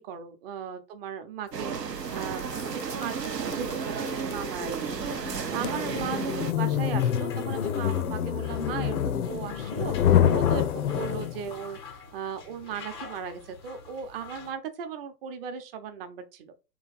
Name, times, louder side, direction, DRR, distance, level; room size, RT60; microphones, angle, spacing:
voice 1, 0.0-16.5, right 7 dB, 35° right, 0.8 m, -37 dB
sound 1, 1.5-6.5, right 6 dB, 90° right, 0.7 m, -33 dB
sound 2, 2.2-11.6, left 9 dB, 65° left, 0.6 m, -27 dB
sound 3, 7.0-14.5, left 5 dB, 20° left, 0.4 m, -46 dB
3.2 x 3.1 x 3.9 m
figure-of-eight pair, 110°, 48 cm